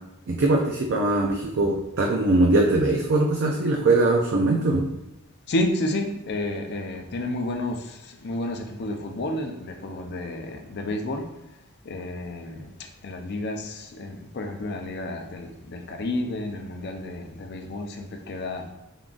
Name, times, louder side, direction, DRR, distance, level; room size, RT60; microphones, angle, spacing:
voice 1, 0.3-4.9, right 2 dB, 55° right, 0 dB, 0.4 m, -21 dB
voice 2, 5.5-11.3 11.8-18.7, left 1 dB, 50° left, 4 dB, 0.5 m, -31 dB
3.7 x 3.6 x 2.4 m, 0.92 s
head